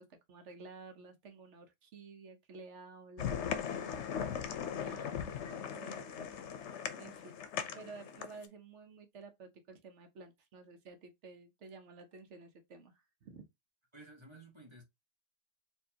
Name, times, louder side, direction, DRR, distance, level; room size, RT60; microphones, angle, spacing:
voice 1, 0.0-5.2 5.5-7.4 7.7-13.4, right 4 dB, 85° right, 1.2 m, -53 dB
sound 1, 3.2-8.5, left 8 dB, 85° left, 0.9 m, -39 dB
voice 2, 13.9-14.8, right 2 dB, 25° right, 1.1 m, -54 dB
4.5 x 2.8 x 2.8 m
omnidirectional pair, 1.2 m